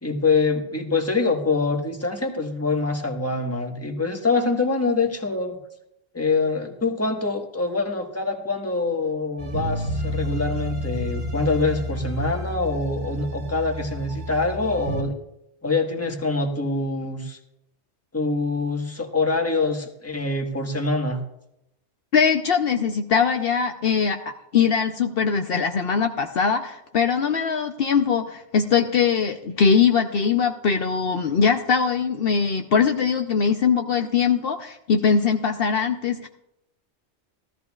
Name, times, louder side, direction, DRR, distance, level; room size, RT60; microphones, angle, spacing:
voice 1, 0.0-5.6 6.1-15.1 15.6-17.4 18.1-21.2, left 3 dB, 15° left, 2 dB, 1.4 m, -25 dB
sound 1, 9.4-15.0, equal, 90° right, 1.9 m, -30 dB
voice 2, 22.1-36.3, left 6 dB, 60° left, 5 dB, 0.9 m, -21 dB
16.0 x 13.5 x 2.4 m, 0.82 s
omnidirectional pair, 1.1 m